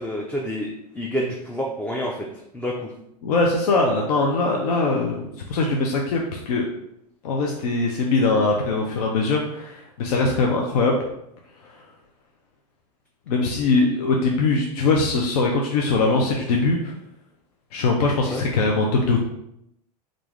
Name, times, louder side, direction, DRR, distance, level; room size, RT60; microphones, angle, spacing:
voice 1, 0.0-2.3 2.5-2.9 18.3-18.4, equal, 5° left, -2 dB, 0.4 m, -28 dB
voice 2, 3.2-6.7 7.2-11.0 11.6-11.7 13.3-16.9 17.7-19.2, left 3 dB, 65° left, 1 dB, 0.5 m, -21 dB
3.4 x 2.5 x 3.1 m, 0.79 s
hypercardioid pair, 95°, 20 cm